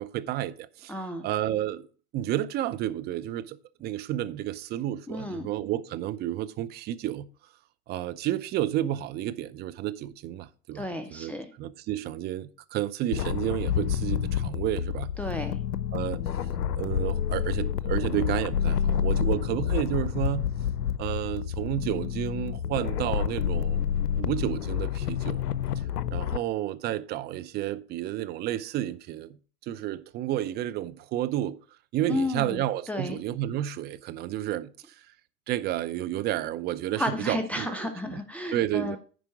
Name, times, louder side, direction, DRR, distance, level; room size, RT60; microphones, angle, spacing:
voice 1, 0.0-1.0 1.2-1.8 2.1-7.3 7.9-11.3 11.6-15.1 15.9-16.4 16.8-20.5 21.0-25.4 26.1-29.4 29.6-31.6 31.9-35.1 35.5-38.2 38.5-39.0, right 13 dB, 20° right, 0.5 m, -31 dB
voice 2, 0.9-1.3 5.1-5.5 10.7-11.5 15.2-15.6 32.1-33.2 37.0-39.0, left 1 dB, 5° left, 1.0 m, -32 dB
sound 1, 13.1-26.4, left 9 dB, 80° left, 0.7 m, -29 dB
10.0 x 4.7 x 5.9 m
hypercardioid pair, 95°, 47 cm